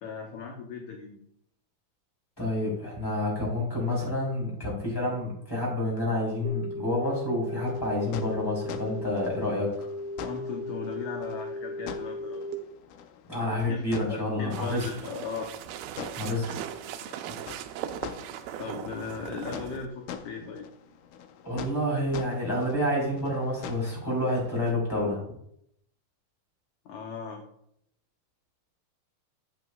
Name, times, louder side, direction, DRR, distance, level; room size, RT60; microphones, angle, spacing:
voice 1, 0.0-1.2 10.2-12.5 13.7-13.9 14.1-15.5 18.6-20.7 26.9-27.4, left 5 dB, 70° left, 2 dB, 1.9 m, -37 dB
voice 2, 2.4-9.9 13.3-14.9 16.2-16.7 21.4-25.2, left 1 dB, 5° left, -4 dB, 3.2 m, -29 dB
sound 1, 6.4-12.5, left 1 dB, 70° right, 1.4 m, -36 dB
sound 2, 7.6-24.7, left 7 dB, 90° left, 1.6 m, -45 dB
sound 3, 14.5-19.9, right 10 dB, 85° right, 2.4 m, -39 dB
11.0 x 8.2 x 2.4 m, 0.74 s
omnidirectional pair, 4.2 m